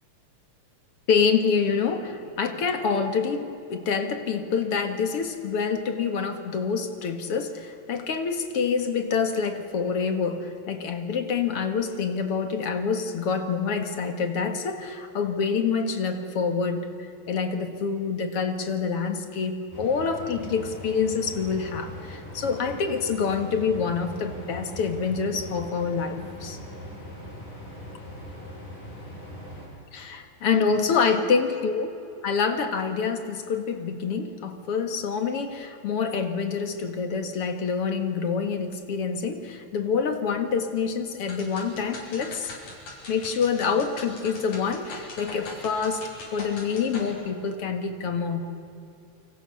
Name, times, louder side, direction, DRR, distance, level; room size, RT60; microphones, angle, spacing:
voice 1, 1.1-26.6 29.9-31.9 32.2-42.5 43.1-48.6, left 5 dB, 50° left, 7 dB, 2.3 m, -27 dB
sound 1, 19.7-29.7, left 1 dB, 70° left, 9.1 m, -41 dB
sound 2, 41.2-47.1, left 2 dB, 85° left, 7.0 m, -41 dB
28.5 x 25.0 x 7.0 m, 2.8 s
omnidirectional pair, 3.7 m